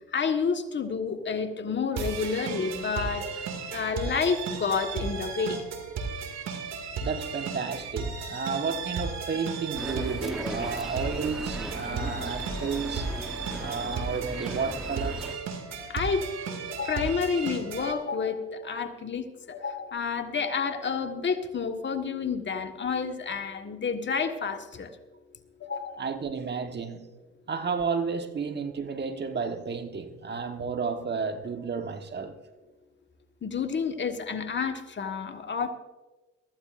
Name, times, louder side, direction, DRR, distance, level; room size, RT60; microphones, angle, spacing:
voice 1, 0.1-3.3 3.7-5.6 15.9-16.2 16.7-24.9 25.6-26.0 33.4-35.7, left 5 dB, 40° left, 1.6 m, -29 dB
sound 1, 1.9-17.9, right 5 dB, 65° right, 2.3 m, -35 dB
voice 2, 7.0-13.1 13.6-15.3 26.0-27.1 27.5-32.4, right 5 dB, 35° right, 1.3 m, -32 dB
sound 2, 9.7-15.4, equal, ahead, 1.1 m, -37 dB
22.5 x 14.5 x 2.6 m
supercardioid pair, 65°, 29 cm